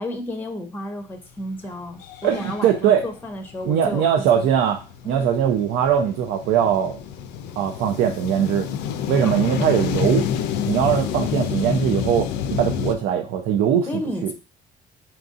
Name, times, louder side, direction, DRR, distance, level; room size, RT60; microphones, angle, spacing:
voice 1, 0.0-4.5 5.0-5.3 9.2-9.4 13.9-14.3, left 1 dB, 10° left, 6 dB, 0.6 m, -32 dB
sound 1, 1.4-1.5 1.9-12.9, left 9 dB, 90° left, 0.4 m, -28 dB
voice 2, 2.2-3.0 3.6-7.0 7.6-8.7 9.1-10.3 10.7-14.3, right 9 dB, 85° right, 4 dB, 0.5 m, -21 dB
5.7 x 2.6 x 2.4 m, 0.34 s
cardioid pair, 110°, 17 cm